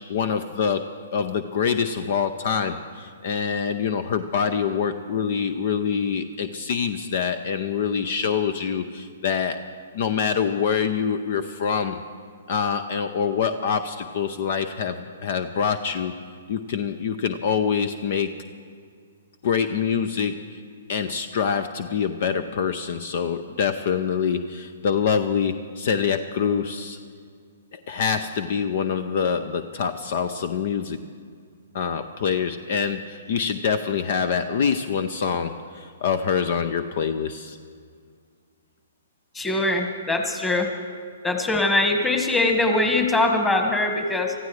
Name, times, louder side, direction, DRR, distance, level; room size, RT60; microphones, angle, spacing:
voice 1, 0.1-0.9 1.1-9.6 9.9-12.0 12.5-16.1 16.5-18.3 19.4-20.6 20.9-27.0 27.7-31.0 31.7-37.6, left 7 dB, 55° left, 11 dB, 0.6 m, -25 dB
voice 2, 39.3-40.7 41.2-44.3, left 2 dB, 10° left, 3 dB, 1.6 m, -22 dB
24.5 x 14.5 x 3.3 m, 2.1 s
figure-of-eight pair, 120°, 0 cm